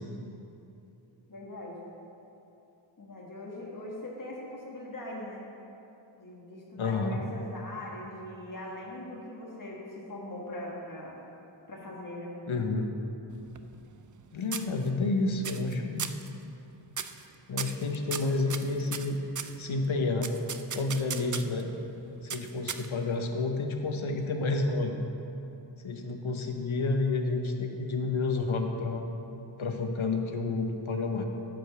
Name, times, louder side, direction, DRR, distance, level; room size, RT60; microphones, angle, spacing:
voice 1, 1.3-1.8 3.0-5.5 6.2-11.2 11.7-12.3, left 1 dB, 45° left, -3 dB, 1.7 m, -41 dB
voice 2, 6.8-7.2 12.5-12.9 14.3-16.1 17.5-19.2 19.6-20.3 20.7-21.7 22.2-24.9 25.8-29.0 29.6-31.3, left 3 dB, 90° left, 4 dB, 0.9 m, -30 dB
sound 1, 13.3-14.2 14.5-15.1 15.4-15.7 16.0-16.3 16.9-17.2 17.6-19.6 20.2-21.6 22.3-23.1, right 7 dB, 40° right, 0.5 m, -37 dB
10.5 x 5.1 x 6.8 m, 2.9 s
wide cardioid pair, 55°, 46 cm